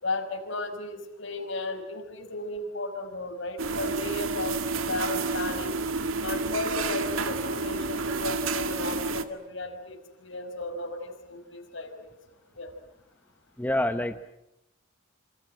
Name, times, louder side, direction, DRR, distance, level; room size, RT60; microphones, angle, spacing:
voice 1, 0.0-4.6 4.8-5.8 6.2-12.1 12.5-12.7, left 2 dB, 65° left, 5 dB, 5.5 m, -34 dB
sound 1, 3.6-9.2, right 3 dB, 85° right, 2.0 m, -30 dB
voice 2, 13.6-14.3, left 1 dB, 10° left, 8 dB, 1.0 m, -27 dB
27.5 x 27.0 x 7.8 m, 0.86 s
head